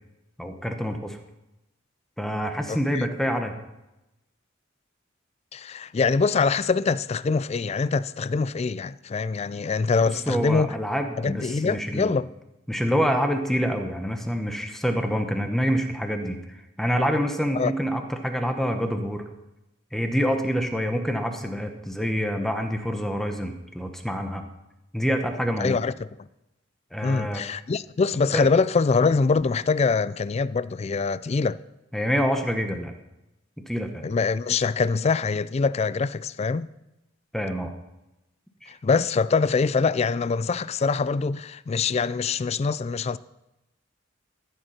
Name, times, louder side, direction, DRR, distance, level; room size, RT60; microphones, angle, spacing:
voice 1, 0.4-1.2 2.2-3.5 10.0-12.1 12.7-16.4 16.8-19.2 19.9-24.4 24.9-25.8 26.9-27.4 28.3-28.5 31.9-32.9 33.7-34.0 37.3-37.7 38.6-38.7, equal, ahead, 1.0 m, -26 dB
voice 2, 2.7-3.1 5.5-10.7 11.2-12.3 17.5-17.7 25.6-25.9 27.0-31.6 34.0-36.7 38.7-43.2, left 4 dB, 30° left, 0.3 m, -24 dB
14.0 x 7.9 x 5.8 m
head